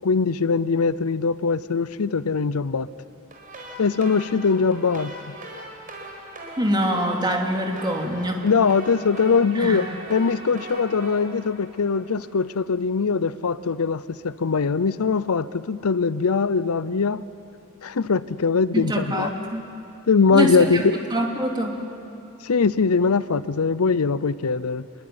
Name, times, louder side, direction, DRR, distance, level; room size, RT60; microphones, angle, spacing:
voice 1, 0.0-2.9 3.8-5.3 8.4-17.2 17.8-19.3 20.1-21.0 22.4-24.9, left 5 dB, 80° left, 16 dB, 0.6 m, -22 dB
sound 1, 3.3-12.4, right 2 dB, 40° right, 4.8 m, -40 dB
voice 2, 6.6-8.4 9.5-9.8 18.7-19.7 20.3-20.8 21.1-21.8, equal, 20° right, 1 dB, 2.8 m, -24 dB
27.0 x 22.0 x 9.6 m, 2.7 s
head